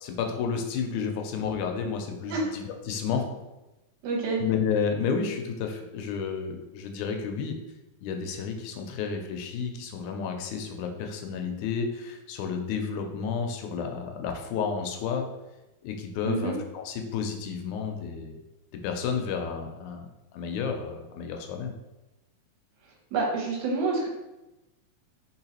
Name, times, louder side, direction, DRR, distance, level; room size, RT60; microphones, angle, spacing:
voice 1, 0.0-3.3 4.4-7.6 8.0-15.3 15.8-18.4 18.7-21.7, left 6 dB, 85° left, 4 dB, 2.0 m, -31 dB
voice 2, 4.0-4.4 16.3-16.5 23.1-24.1, right 3 dB, 80° right, -1 dB, 2.3 m, -27 dB
4.3 x 3.8 x 2.9 m, 0.99 s
omnidirectional pair, 3.5 m